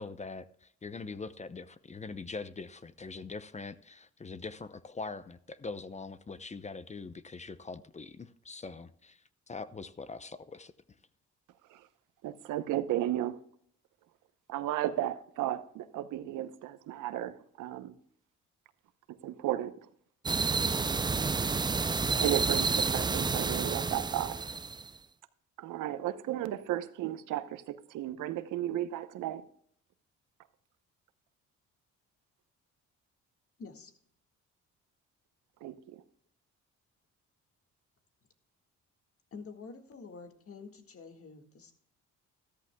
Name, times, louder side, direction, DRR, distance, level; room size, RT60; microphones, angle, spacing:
voice 1, 0.0-10.7, left 4 dB, 25° left, 0.7 m, -43 dB
voice 2, 12.2-13.4 14.5-18.0 19.2-19.8 22.2-24.4 25.6-29.4 35.6-36.0, right 13 dB, 90° right, 0.8 m, -34 dB
sound 1, 20.3-24.9, right 4 dB, 15° right, 0.4 m, -30 dB
voice 3, 33.6-33.9 39.3-41.7, left 4 dB, 50° left, 1.9 m, -47 dB
13.5 x 13.5 x 2.3 m
cardioid pair, 90°, 30 cm